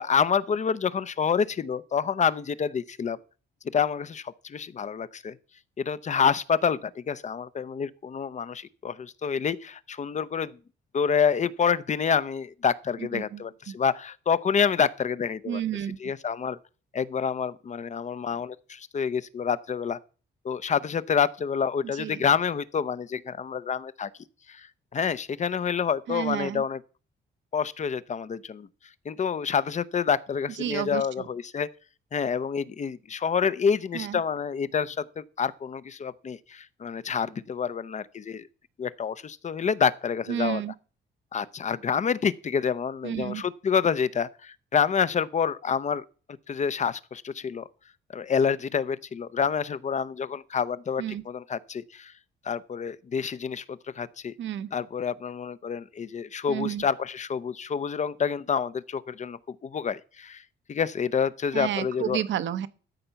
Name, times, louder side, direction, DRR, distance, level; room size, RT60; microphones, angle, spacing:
voice 1, 0.0-3.2 3.7-5.3 5.8-10.6 10.9-15.6 16.0-16.6 16.9-20.0 20.4-24.1 24.5-24.7 24.9-26.8 27.5-28.7 29.1-31.7 32.1-38.5 38.8-40.6 41.3-46.0 46.5-47.6 48.1-52.1 52.4-54.3 54.7-60.4 60.7-62.2, left 6 dB, 35° left, 0.6 m, -28 dB
voice 2, 13.1-13.8 15.5-16.0 22.0-22.2 26.1-26.6 30.6-31.3 33.9-34.2 40.3-40.7 43.0-43.4 51.0-51.2 54.4-54.7 56.5-56.8 61.5-62.7, right 11 dB, 70° right, 0.9 m, -31 dB
13.0 x 4.4 x 6.9 m
cardioid pair, 90°, 20 cm